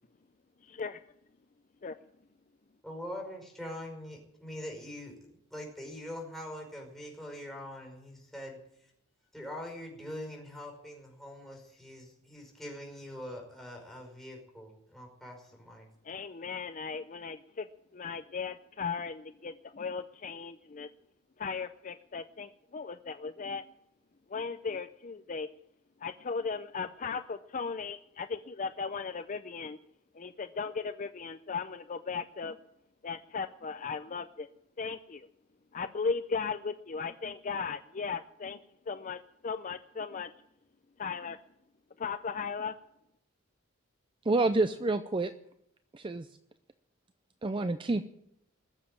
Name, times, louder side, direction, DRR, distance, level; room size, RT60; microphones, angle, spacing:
voice 1, 0.6-1.0 1.8-2.0 16.0-17.7 17.9-20.9 21.4-23.6 24.3-25.5 26.0-29.8 30.2-32.6 33.0-34.5 34.8-35.3 35.7-38.6 38.9-40.3 41.0-41.4 42.0-42.7, left 5 dB, 40° left, 10 dB, 0.5 m, -37 dB
voice 2, 2.8-8.6 9.3-15.9, left 1 dB, ahead, 0 dB, 5.3 m, -43 dB
voice 3, 44.3-45.3 45.9-46.3 47.4-48.1, right 2 dB, 25° right, 10 dB, 0.5 m, -28 dB
20.5 x 7.4 x 8.9 m, 0.79 s
head